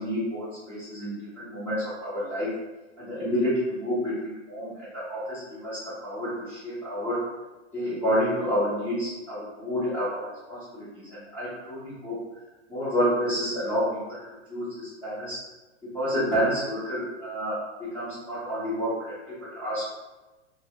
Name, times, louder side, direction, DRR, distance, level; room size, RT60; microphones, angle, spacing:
voice 1, 0.0-2.5 3.0-7.2 7.7-12.2 12.7-14.2 14.5-15.4 15.9-19.9, equal, 5° left, -14 dB, 0.5 m, -29 dB
2.6 x 2.3 x 2.8 m, 1.1 s
supercardioid pair, 160°, 34 cm